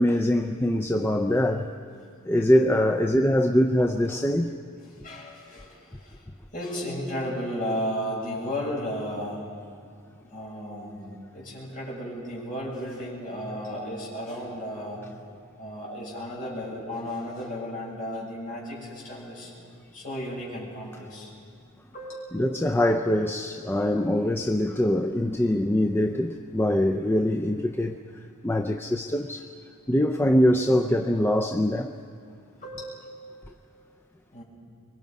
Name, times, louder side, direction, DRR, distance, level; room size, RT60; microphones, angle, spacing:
voice 1, 0.0-1.7 2.2-4.5 22.3-28.0 28.4-29.5 29.9-31.9, left 1 dB, 10° left, 4 dB, 0.5 m, -23 dB
voice 2, 5.0-6.2 6.5-9.5 10.3-15.0 15.6-19.5 19.9-21.3 21.9-22.3 32.6-33.1 34.3-34.4, equal, 40° left, -5 dB, 7.1 m, -34 dB
25.0 x 23.5 x 5.3 m, 2.4 s
head